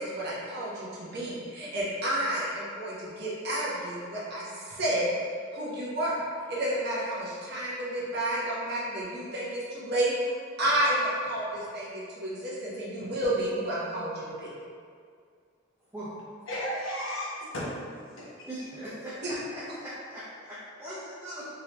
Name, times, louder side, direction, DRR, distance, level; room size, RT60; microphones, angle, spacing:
voice 1, 0.0-5.1 5.5-6.2 6.5-14.5 19.2-19.3, right 1 dB, 55° right, -7 dB, 1.0 m, -31 dB
voice 2, 16.5-18.5, equal, 80° left, -6 dB, 1.0 m, -35 dB
voice 3, 18.5-21.5, equal, 10° right, -11 dB, 0.7 m, -40 dB
3.8 x 3.2 x 2.9 m, 2.2 s
head